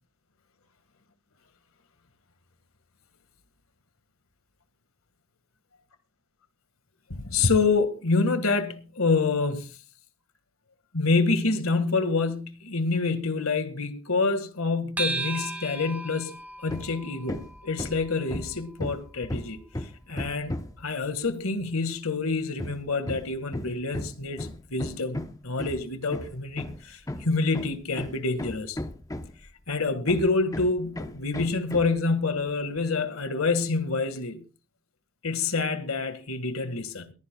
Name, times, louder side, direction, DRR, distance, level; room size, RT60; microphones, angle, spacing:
voice 1, 7.1-9.7 10.9-19.6 20.1-20.5 20.8-25.2 25.4-28.8 29.7-34.4 35.2-37.1, left 3 dB, 85° left, 1.7 m, -27 dB
sound 1, 15.0-19.7, right 3 dB, 10° right, 1.7 m, -37 dB
Hammer, 16.7-17.0 17.3-20.9 22.6-29.5 30.1-32.0, left 1 dB, 15° left, 0.7 m, -35 dB
22.5 x 15.0 x 2.3 m
head